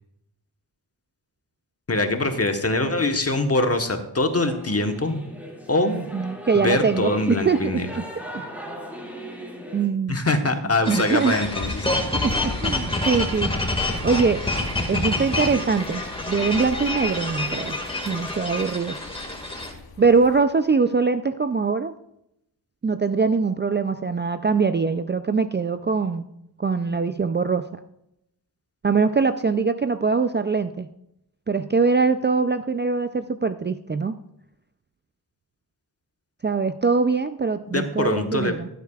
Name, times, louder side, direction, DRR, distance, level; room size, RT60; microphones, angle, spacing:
voice 1, 1.9-5.3 5.7-6.0 6.5-7.9 10.1-11.9 37.7-38.5, left 2 dB, 35° left, 6 dB, 1.2 m, -23 dB
Singing / Musical instrument, 4.4-9.9, equal, 5° right, 2.2 m, -38 dB
voice 2, 5.8-8.0 8.3-8.4 9.7-10.2 10.9-11.3 12.1-13.5 14.0-14.4 14.9-16.0 16.3-17.8 18.1-19.0 20.0-21.9 22.8-26.2 26.6-27.8 28.8-30.9 31.5-34.1 36.4-38.7, right 4 dB, 30° right, 10 dB, 0.4 m, -22 dB
sound 1, 10.9-19.7, left 2 dB, 15° left, 2.0 m, -27 dB
sound 2, 11.4-20.4, left 4 dB, 60° left, 1.0 m, -38 dB
15.5 x 8.1 x 2.4 m, 0.81 s
wide cardioid pair, 60°, 41 cm